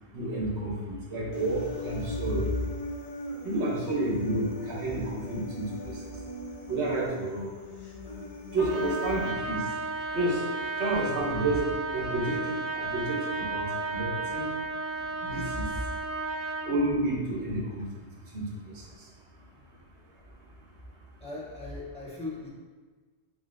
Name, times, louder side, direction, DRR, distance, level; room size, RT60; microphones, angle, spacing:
voice 1, 0.1-2.4 3.4-5.6 6.7-7.5 8.5-9.6 10.1-10.4 10.8-14.5 15.2-15.6 16.7-17.8 18.3-18.4, right 1 dB, 65° right, -2 dB, 1.2 m, -30 dB
Human voice, 1.3-9.3, equal, 45° left, 0.5 m, -40 dB
voice 2, 5.7-6.0 10.1-10.2 15.0-15.1 19.5-19.7 20.0-20.1 21.2-22.5, left 2 dB, 5° left, -7 dB, 0.6 m, -41 dB
Trumpet, 8.6-16.7, right 3 dB, 50° right, 0.3 m, -33 dB
3.8 x 3.8 x 2.5 m, 1.4 s
omnidirectional pair, 1.2 m